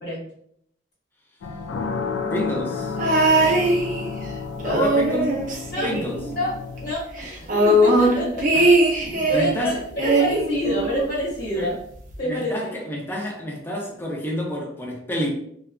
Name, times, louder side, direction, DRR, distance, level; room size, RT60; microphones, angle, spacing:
sound 1, 1.4-6.9, left 5 dB, 80° left, 0.3 m, -31 dB
voice 1, 2.3-2.9 4.7-5.3 5.8-6.2 8.5-8.7 9.1-9.8 11.5-11.7 12.2-15.3, left 1 dB, 10° left, -2 dB, 0.4 m, -28 dB
sound 2, 3.0-4.3 4.6-6.5 6.8-6.9 7.2-9.6 10.0-11.2 12.1-12.2, right 1 dB, 45° right, 0.5 m, -20 dB
voice 2, 4.6-4.9 5.7-5.9 6.4-8.7 9.3-11.8 12.2-12.7, left 1 dB, 50° left, -7 dB, 1.1 m, -27 dB
2.7 x 2.2 x 2.4 m, 0.68 s
head